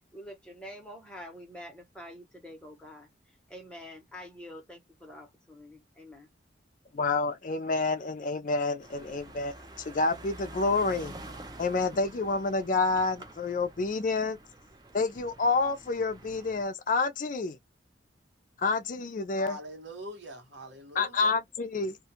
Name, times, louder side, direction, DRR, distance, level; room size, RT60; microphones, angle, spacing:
voice 1, 0.1-3.1 3.5-6.3, equal, 5° left, 1.0 m, -46 dB
voice 2, 6.9-11.1 11.6-14.4 14.9-17.6 18.6-19.6 21.0-22.0, left 3 dB, 45° left, 0.4 m, -28 dB
sound 1, 8.8-16.6, right 2 dB, 20° right, 0.4 m, -48 dB
voice 3, 19.4-21.4, right 1 dB, 65° right, 1.2 m, -43 dB
2.4 x 2.3 x 2.8 m
head